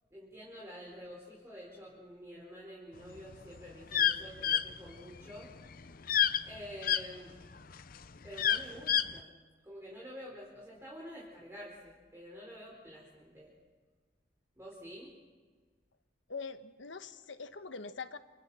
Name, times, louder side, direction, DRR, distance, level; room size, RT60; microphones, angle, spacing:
voice 1, 0.1-5.5 6.4-7.4 8.2-9.3 9.6-13.6 14.6-15.1, equal, 15° right, -5 dB, 4.9 m, -48 dB
sound 1, 3.2-7.0 7.5-9.2, left 9 dB, 50° left, 0.7 m, -29 dB
voice 2, 16.3-18.2, left 4 dB, 80° left, 10 dB, 1.2 m, -43 dB
29.0 x 28.5 x 4.4 m, 1.4 s
head